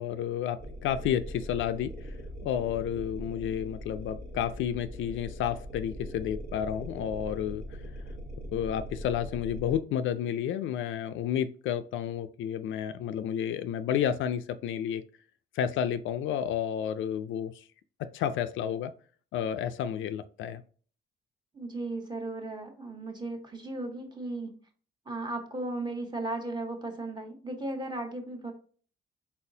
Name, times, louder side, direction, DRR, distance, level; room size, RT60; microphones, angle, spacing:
voice 1, 0.0-2.2 2.4-7.9 8.5-15.0 15.5-17.6 18.0-18.9 19.3-20.6, left 9 dB, 75° left, 0.4 m, -31 dB
sound 1, 0.6-9.8, equal, 60° right, 1.3 m, -41 dB
voice 2, 21.5-24.6 25.1-28.5, right 2 dB, 20° right, 1.2 m, -36 dB
4.1 x 4.0 x 2.7 m
cardioid pair, 90°, 20 cm